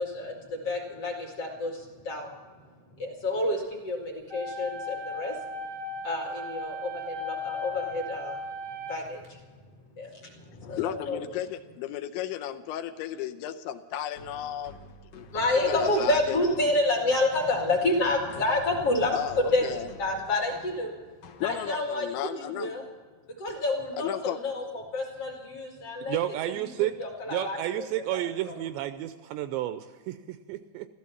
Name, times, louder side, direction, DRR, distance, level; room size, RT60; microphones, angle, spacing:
voice 1, 0.0-2.4 3.0-5.4 6.0-8.4 8.8-9.5 9.9-11.2 15.3-20.9 21.4-22.8 23.4-28.2 28.4-28.5, left 2 dB, 45° left, 0 dB, 2.2 m, -29 dB
sound 1, 4.3-9.3, left 1 dB, 35° right, 1.2 m, -36 dB
voice 2, 10.6-15.3 15.7-16.4 19.1-19.9 21.4-22.7 24.0-24.4, left 11 dB, 80° left, 7 dB, 3.0 m, -34 dB
sound 2, 14.2-22.0, left 3 dB, 60° left, 2.4 m, -48 dB
voice 3, 26.0-26.9 27.3-30.9, right 14 dB, 80° right, 10 dB, 2.6 m, -31 dB
15.0 x 13.5 x 7.1 m, 1.5 s
omnidirectional pair, 5.4 m